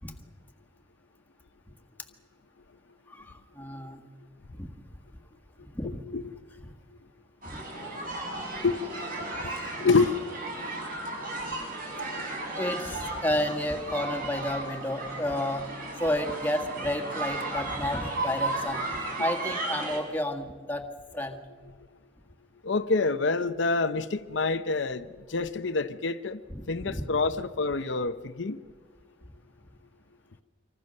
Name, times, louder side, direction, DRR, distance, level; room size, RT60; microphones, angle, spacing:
voice 1, 3.1-4.0 4.5-4.7 5.6-6.0 7.5-7.6 12.5-15.7 16.0-18.8 19.2-20.9 21.1-21.4 26.5-27.0, left 1 dB, 10° left, 1.8 m, -31 dB
voice 2, 5.8-6.4 8.6-8.7 9.4-10.1 12.0-12.3 22.6-26.4 26.7-28.6, left 3 dB, 70° left, 0.8 m, -27 dB
sound 1, 7.4-20.0, right 2 dB, 45° right, 6.4 m, -34 dB
26.5 x 24.0 x 6.6 m
head